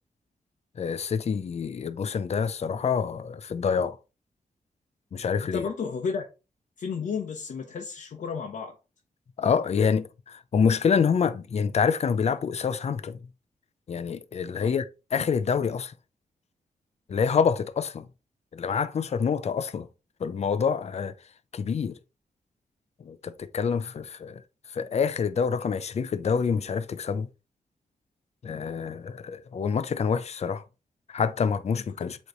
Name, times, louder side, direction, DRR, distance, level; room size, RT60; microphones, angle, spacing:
voice 1, 0.8-4.0 5.1-5.6 9.4-13.2 13.9-14.9 15.1-15.9 17.1-18.1 18.5-19.9 20.2-21.1 21.5-22.0 23.0-24.4 24.7-27.3 28.4-30.6 31.1-32.2, left 6 dB, 55° left, 0.6 m, -26 dB
voice 2, 5.4-6.2 6.8-8.7 14.6-14.7 31.7-32.1, left 5 dB, 75° left, 1.0 m, -33 dB
8.1 x 3.2 x 4.0 m
wide cardioid pair, 100°, 13 cm